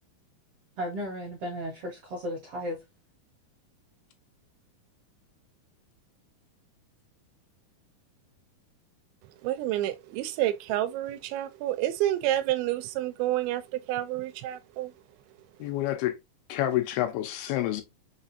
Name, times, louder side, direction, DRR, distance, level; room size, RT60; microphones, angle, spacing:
voice 1, 0.8-2.8, equal, 65° right, 1.5 m, -34 dB
voice 2, 9.4-14.9, right 13 dB, 85° right, 2.4 m, -29 dB
voice 3, 15.6-16.2 16.5-17.8, left 13 dB, 85° left, 2.6 m, -28 dB
5.9 x 2.4 x 2.6 m
omnidirectional pair, 4.3 m